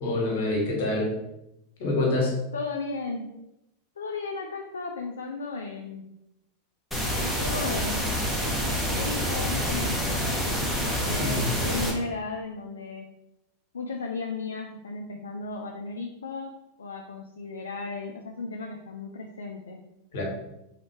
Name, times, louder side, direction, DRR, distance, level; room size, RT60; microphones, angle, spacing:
voice 1, 0.0-1.1 1.8-2.4 11.2-11.5 20.1-20.2, left 2 dB, 65° left, -1 dB, 1.2 m, -26 dB
voice 2, 2.5-3.4 4.0-6.1 7.2-8.1 8.9-10.5 10.7-13.1 13.7-16.5 16.8-19.8, left 3 dB, 85° left, 2 dB, 0.3 m, -35 dB
sound 1, 6.9-11.9, equal, ahead, 1.0 m, -27 dB
3.2 x 2.8 x 3.0 m, 0.87 s
hypercardioid pair, 95°, 0 cm